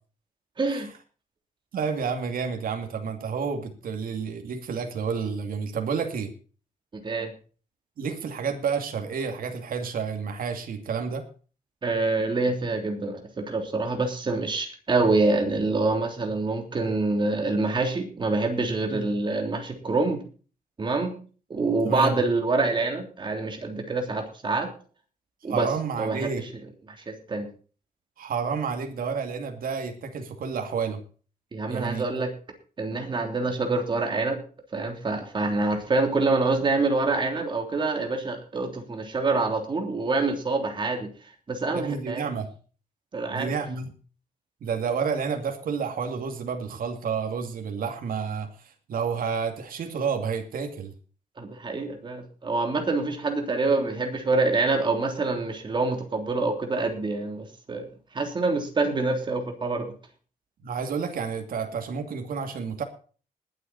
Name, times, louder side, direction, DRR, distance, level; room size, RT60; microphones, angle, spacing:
voice 1, 0.6-0.9 6.9-7.3 11.8-20.2 20.8-21.2 21.5-24.7 25.4-25.7 26.0-26.5 27.0-27.5 31.5-32.3 32.8-34.4 34.7-41.1 41.5-42.2 43.1-43.6 51.4-57.9 58.1-59.9, right 3 dB, 30° right, 4 dB, 3.2 m, -26 dB
voice 2, 1.7-6.3 8.0-11.3 18.9-19.1 21.8-22.2 25.5-26.4 28.2-31.0 31.7-32.1 41.7-42.5 43.3-43.9 44.6-50.9 60.6-62.8, right 6 dB, 70° right, 5 dB, 2.5 m, -30 dB
20.0 x 8.4 x 4.2 m, 0.38 s
wide cardioid pair, 165°, 15 cm